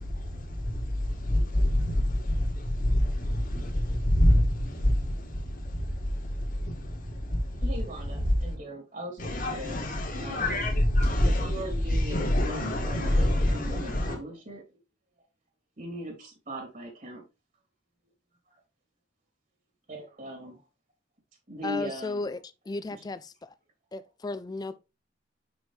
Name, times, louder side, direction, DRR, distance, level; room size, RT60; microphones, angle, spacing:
voice 1, 0.0-8.6 9.2-14.2, left 1 dB, 50° left, 2.0 m, -27 dB
voice 2, 7.6-9.8 10.2-10.6 11.2-14.6 15.8-17.2 18.5-18.6 19.9-20.7 21.5-22.2 22.9-23.1, equal, 45° right, 2.7 m, -39 dB
voice 3, 21.6-22.4 22.7-23.5 23.9-24.8, left 2 dB, 20° left, 0.4 m, -34 dB
6.3 x 6.0 x 3.2 m
head